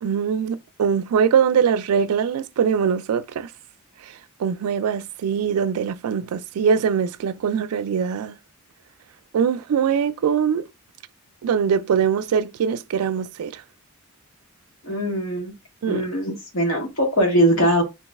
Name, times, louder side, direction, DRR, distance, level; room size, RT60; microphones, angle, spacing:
voice 1, 0.0-3.5 4.4-8.3 9.3-10.7 11.4-13.6 15.8-16.1, right 7 dB, 85° right, 0.3 m, -22 dB
voice 2, 14.8-15.5 15.9-17.8, equal, 65° left, 1.3 m, -21 dB
3.1 x 2.5 x 3.4 m
head